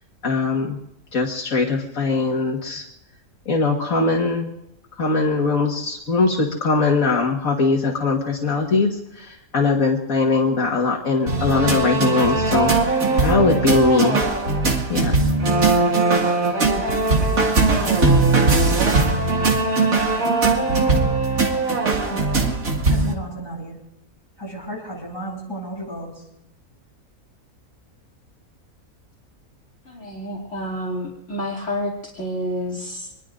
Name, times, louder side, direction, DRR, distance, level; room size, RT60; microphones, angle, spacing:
voice 1, 0.2-0.8 1.1-2.8 3.5-4.5 5.0-12.7 13.2-14.2 14.9-15.2, left 3 dB, 70° left, 0 dB, 2.0 m, -21 dB
sound 1, 11.3-23.1, right 3 dB, 70° right, 2.6 m, -19 dB
voice 2, 22.1-22.6 22.9-23.8 24.4-26.2, right 1 dB, 15° left, -4 dB, 8.2 m, -33 dB
voice 3, 29.8-33.1, equal, 50° left, -2 dB, 3.1 m, -29 dB
26.5 x 20.5 x 2.6 m, 0.85 s
omnidirectional pair, 1.5 m